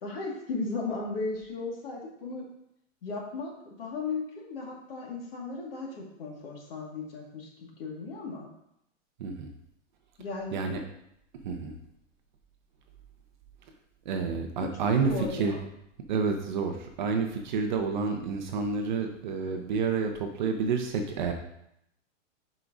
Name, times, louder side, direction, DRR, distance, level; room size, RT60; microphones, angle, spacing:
voice 1, 0.0-2.5 3.0-8.5 10.2-10.6 14.7-15.6, left 3 dB, 50° left, -1 dB, 2.0 m, -36 dB
voice 2, 9.2-9.5 10.5-10.8 11.4-11.8 14.1-15.6 16.1-21.3, right 5 dB, 40° right, 4 dB, 0.8 m, -29 dB
10.5 x 5.0 x 2.7 m, 0.77 s
hypercardioid pair, 165°, 38 cm